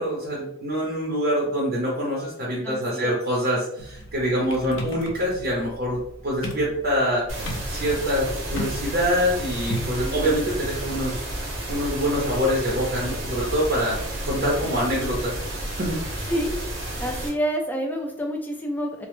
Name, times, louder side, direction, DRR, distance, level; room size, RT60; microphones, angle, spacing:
voice 1, 0.0-11.2 11.7-14.0 14.3-15.3 15.8-16.0, equal, 50° right, -4 dB, 0.6 m, -25 dB
voice 2, 2.6-3.2 10.0-10.3 16.3-16.5 17.0-19.1, equal, 10° left, 2 dB, 0.3 m, -28 dB
sound 1, 3.8-10.1, equal, 70° left, 0.4 m, -35 dB
sound 2, 7.3-17.3, right 1 dB, 80° right, 0.8 m, -31 dB
2.1 x 2.0 x 3.0 m, 0.75 s
head